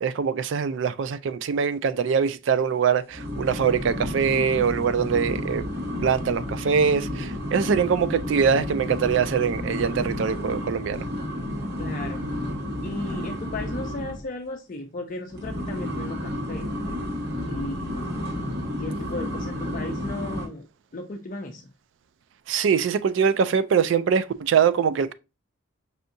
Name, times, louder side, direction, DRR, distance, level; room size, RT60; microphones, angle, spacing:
voice 1, 0.0-5.7 6.0-11.1 22.5-25.1, right 6 dB, 70° right, 0.3 m, -23 dB
sound 1, 3.1-14.2 15.3-20.5, left 1 dB, 55° right, 1.6 m, -31 dB
voice 2, 11.8-12.2 12.8-16.7 17.5-18.1 18.7-20.7 20.9-21.7, left 2 dB, 45° left, 0.5 m, -35 dB
5.5 x 2.6 x 2.5 m
head